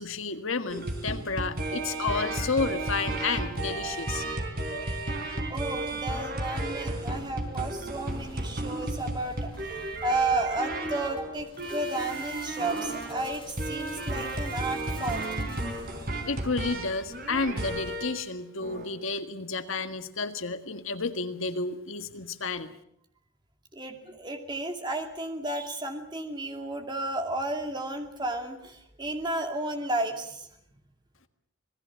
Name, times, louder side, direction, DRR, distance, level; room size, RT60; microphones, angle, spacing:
voice 1, 0.0-4.3 16.3-22.7, left 4 dB, 65° left, 8 dB, 1.7 m, -31 dB
sound 1, 0.7-18.2 18.6-18.9, right 2 dB, 45° right, 3.5 m, -33 dB
sound 2, 3.2-18.0, left 1 dB, 20° left, 4.0 m, -48 dB
voice 2, 5.5-15.3 23.7-30.5, right 2 dB, 20° right, 4 dB, 2.4 m, -32 dB
26.5 x 19.0 x 7.2 m, 0.71 s
head